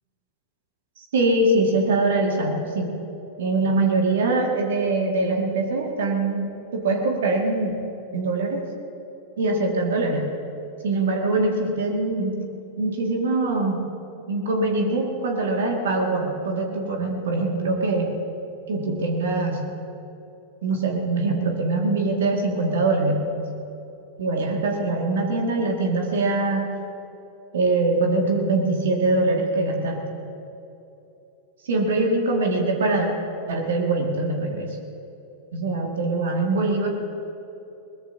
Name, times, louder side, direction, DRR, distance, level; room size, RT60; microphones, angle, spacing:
voice 1, 1.0-2.9 3.4-6.5 6.7-7.8 8.1-8.6 9.4-10.3 10.8-12.4 12.8-13.8 14.3-18.1 18.7-19.6 20.6-23.2 24.2-26.7 27.5-30.0 31.6-33.1 33.5-34.7 35.5-36.9, right 2 dB, 60° right, 1 dB, 2.1 m, -23 dB
22.0 x 21.0 x 2.8 m, 2.9 s
figure-of-eight pair, 90°, 0 cm